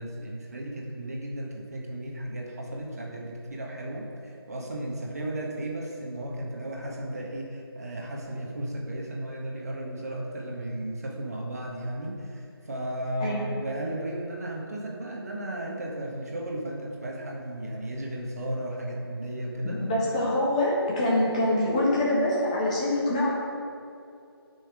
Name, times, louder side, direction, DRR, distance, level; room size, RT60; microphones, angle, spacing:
voice 1, 0.0-19.8, right 1 dB, 40° right, -1 dB, 1.7 m, -34 dB
voice 2, 13.2-13.6 19.6-23.3, left 1 dB, 15° left, -6 dB, 1.5 m, -25 dB
8.8 x 6.3 x 8.3 m, 2.6 s
figure-of-eight pair, 165°, 13 cm